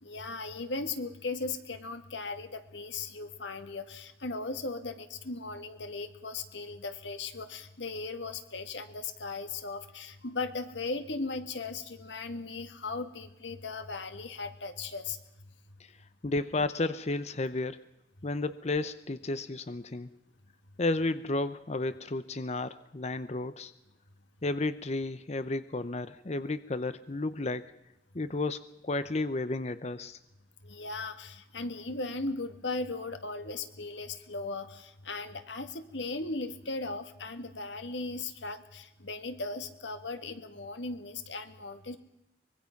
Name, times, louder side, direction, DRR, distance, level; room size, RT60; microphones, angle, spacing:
voice 1, 0.0-15.2 30.6-42.0, left 3 dB, 90° left, 9 dB, 1.9 m, -37 dB
voice 2, 16.2-17.8 18.2-20.1 20.8-23.7 24.4-27.7 28.1-30.2, left 2 dB, 40° left, 13 dB, 0.7 m, -32 dB
24.5 x 22.0 x 5.9 m, 0.90 s
head